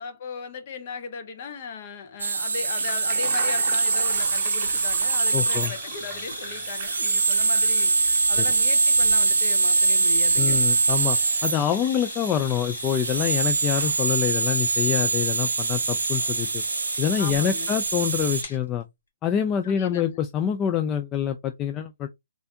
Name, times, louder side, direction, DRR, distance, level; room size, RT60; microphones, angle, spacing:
voice 1, 0.0-7.9 8.3-10.7 17.2-17.7 19.6-20.2, left 5 dB, 45° left, 0.7 m, -37 dB
sound 1, 2.2-18.4, right 4 dB, 75° right, 0.3 m, -24 dB
sound 2, 2.4-8.8 9.2-13.3 13.6-14.5, right 7 dB, 35° right, 0.6 m, -41 dB
sound 3, 4.1-18.6, left 2 dB, 65° left, 1.5 m, -39 dB
voice 2, 5.3-5.7 8.4-8.5 10.4-16.6 17.0-18.8 19.2-22.1, left 9 dB, 20° left, 0.3 m, -26 dB
3.3 x 2.5 x 2.7 m
figure-of-eight pair, 135°, 0 cm